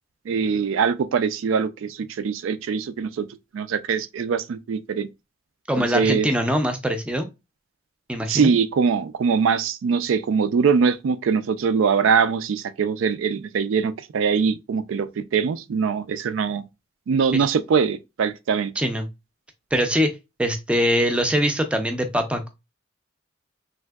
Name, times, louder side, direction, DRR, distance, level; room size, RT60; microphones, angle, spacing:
voice 1, 0.3-3.3 3.5-5.1 5.8-6.3 8.3-16.6 17.1-18.7, right 6 dB, 75° right, 0.3 m, -22 dB
voice 2, 5.7-7.3 8.1-8.5 17.3-17.4 18.8-19.1 19.7-20.1 20.4-22.5, equal, 5° right, 0.4 m, -22 dB
3.4 x 2.6 x 2.2 m
head